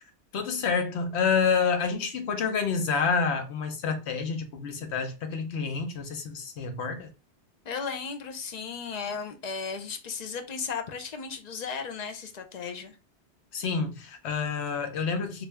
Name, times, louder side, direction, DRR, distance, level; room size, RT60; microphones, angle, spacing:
voice 1, 0.3-7.1 13.5-15.5, left 5 dB, 75° left, 1.0 m, -28 dB
voice 2, 7.6-12.9, left 5 dB, 50° left, 0.6 m, -35 dB
3.3 x 2.5 x 3.3 m
omnidirectional pair, 1.1 m